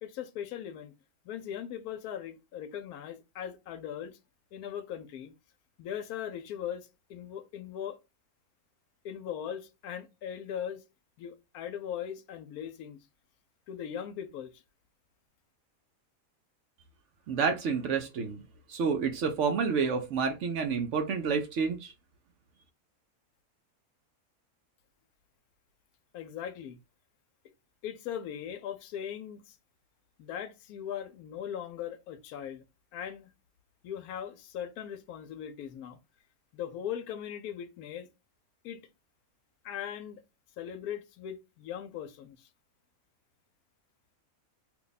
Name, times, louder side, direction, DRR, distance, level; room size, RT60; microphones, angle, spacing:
voice 1, 0.0-0.9 1.2-4.2 4.5-5.3 5.8-8.0 9.0-10.8 11.2-13.0 13.7-14.6 26.1-26.8 27.8-29.6 30.2-32.7 32.9-33.3 33.8-36.0 36.5-38.1 38.6-38.8 39.6-40.2 40.6-42.5, left 9 dB, 80° left, 1.1 m, -39 dB
voice 2, 17.3-18.4 18.7-21.9, right 5 dB, 65° right, 0.8 m, -29 dB
2.7 x 2.2 x 3.9 m
omnidirectional pair, 1.5 m